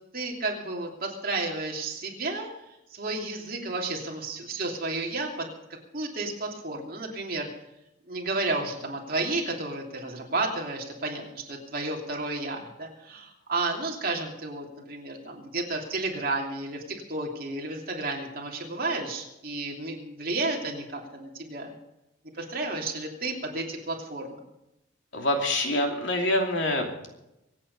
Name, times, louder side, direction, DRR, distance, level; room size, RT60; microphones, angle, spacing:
voice 1, 0.1-2.5 2.9-5.5 5.9-7.5 8.1-16.8 17.1-21.7 22.4-24.4, right 2 dB, 45° right, 0 dB, 2.9 m, -32 dB
voice 2, 25.1-26.9, left 1 dB, 65° left, 2 dB, 2.8 m, -25 dB
25.0 x 8.7 x 5.5 m, 0.91 s
head